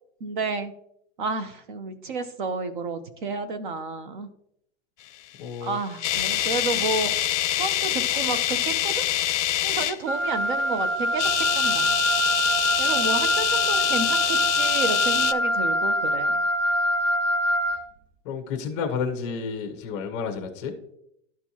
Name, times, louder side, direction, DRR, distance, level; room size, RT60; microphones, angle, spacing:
voice 1, 0.2-0.7 1.2-4.3 5.6-7.1 7.5-9.0 9.6-12.0 12.8-16.4, right 3 dB, 40° right, 11 dB, 0.6 m, -31 dB
voice 2, 5.4-5.8 18.2-20.7, left 6 dB, 25° left, 5 dB, 0.8 m, -31 dB
sound 1, 5.5-10.0 11.1-15.3, left 13 dB, 70° left, 0.5 m, -25 dB
Wind instrument woodwind instrument, 10.1-17.8, equal, 85° right, 1.1 m, -24 dB
12.5 x 4.5 x 2.8 m, 0.75 s
supercardioid pair, 170°, 37 cm